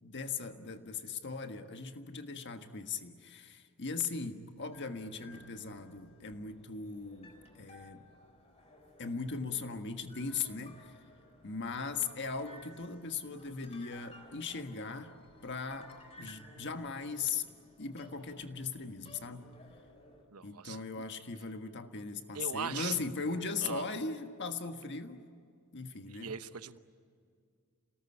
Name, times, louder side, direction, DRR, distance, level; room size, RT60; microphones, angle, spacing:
voice 1, 0.0-8.0 9.0-10.9 11.4-15.1 15.4-15.9 16.2-17.4 17.8-19.5 20.4-25.3 25.7-26.3, left 5 dB, 55° left, 7 dB, 1.5 m, -39 dB
sound 1, 4.7-20.2, left 1 dB, 30° left, 4.1 m, -58 dB
voice 2, 20.3-21.0 22.3-23.0 23.6-23.8 26.1-26.8, right 6 dB, 80° right, 12 dB, 0.9 m, -40 dB
29.0 x 18.5 x 9.9 m, 2.2 s
head